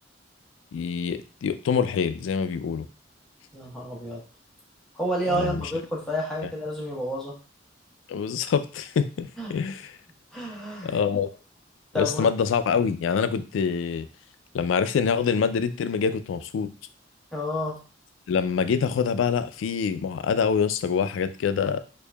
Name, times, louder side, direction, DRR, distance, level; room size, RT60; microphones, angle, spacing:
voice 1, 0.7-2.9 5.3-5.7 6.4-6.5 8.1-10.0 10.8-11.3 11.9-14.1 14.5-16.7 18.3-21.8, left 6 dB, 85° left, 11 dB, 0.3 m, -25 dB
voice 2, 3.5-4.2 4.9-7.3 9.4-9.5 10.3-11.0 11.9-12.3 17.3-17.8, equal, 5° left, -5 dB, 1.1 m, -30 dB
4.5 x 2.6 x 2.3 m, 0.36 s
head